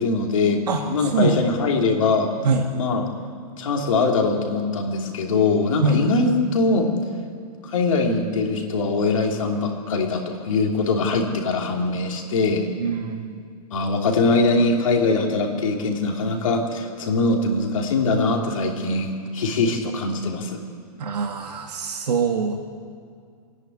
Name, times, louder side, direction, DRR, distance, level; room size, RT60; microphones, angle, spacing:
voice 1, 0.0-2.3 2.8-3.1 3.6-6.9 7.6-12.7 13.7-20.6, left 3 dB, 55° left, 1 dB, 3.1 m, -22 dB
voice 2, 0.7-1.7 2.4-2.7 5.8-6.0 12.8-13.4 21.0-22.5, right 4 dB, 85° right, 1 dB, 1.9 m, -24 dB
27.5 x 10.5 x 9.6 m, 2.2 s
hypercardioid pair, 180°, 20 cm